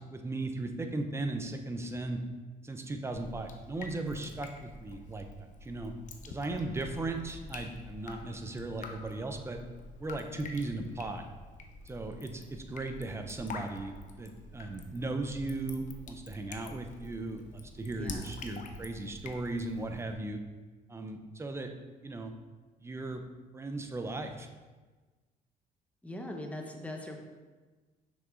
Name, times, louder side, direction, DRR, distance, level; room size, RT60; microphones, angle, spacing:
voice 1, 0.0-2.2 2.6-5.3 5.6-5.9 6.3-9.6 10.0-11.2 11.9-20.4 20.9-21.7 22.0-22.3 22.8-23.2 23.5-24.5, right 2 dB, 15° right, 5 dB, 0.7 m, -37 dB
Drip, 3.1-20.1, left 3 dB, 45° left, 0.8 m, -47 dB
voice 2, 18.0-18.4 26.0-27.2, left 1 dB, 10° left, 2 dB, 1.0 m, -41 dB
6.0 x 6.0 x 3.9 m, 1.3 s
cardioid pair, 110°, 17 cm